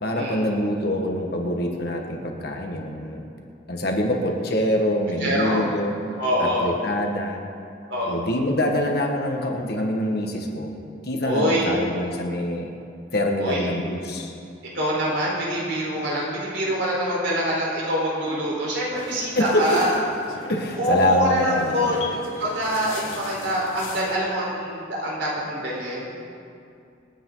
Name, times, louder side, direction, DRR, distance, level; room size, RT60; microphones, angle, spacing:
voice 1, 0.0-3.2 3.7-5.9 6.4-7.4 8.1-10.7 11.0-12.7 13.1-14.3 19.3-19.8 20.5-22.0, left 1 dB, 50° left, 1 dB, 1.6 m, -25 dB
voice 2, 5.2-5.6 6.2-6.7 7.9-8.2 11.2-11.7 13.4-13.7 14.7-20.0 20.8-22.1 22.4-26.1, equal, 60° right, -4 dB, 4.3 m, -25 dB
sound 1, 18.9-24.2, left 3 dB, 90° left, 1.8 m, -40 dB
27.0 x 9.3 x 4.0 m, 2.5 s
head